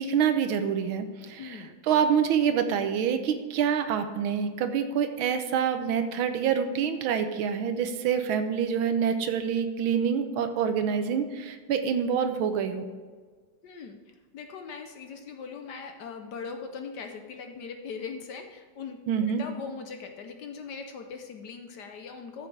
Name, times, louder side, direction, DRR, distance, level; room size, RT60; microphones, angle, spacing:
voice 1, 0.0-12.8 19.1-19.4, right 7 dB, 85° right, 8 dB, 1.6 m, -26 dB
voice 2, 1.4-1.7 13.6-14.0 14.3-22.5, left 5 dB, 65° left, 5 dB, 1.2 m, -40 dB
13.5 x 7.0 x 3.3 m, 1.5 s
omnidirectional pair, 2.3 m